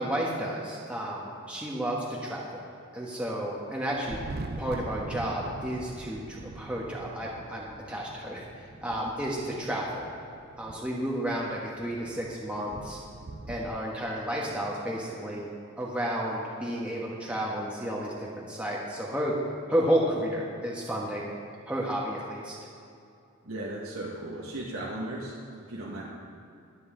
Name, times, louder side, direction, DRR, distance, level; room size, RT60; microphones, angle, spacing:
voice 1, 0.0-2.6 2.9-4.2 4.6-8.4 8.8-10.1 10.6-13.0 13.5-15.5 15.8-19.3 19.7-21.3 21.7-22.6, right 1 dB, 5° right, -5 dB, 1.2 m, -31 dB
Thunder, 4.0-13.8, right 2 dB, 45° right, 0.5 m, -43 dB
voice 2, 23.4-25.3 25.7-26.0, right 1 dB, 85° right, -6 dB, 1.8 m, -36 dB
23.0 x 8.0 x 3.9 m, 2.5 s
head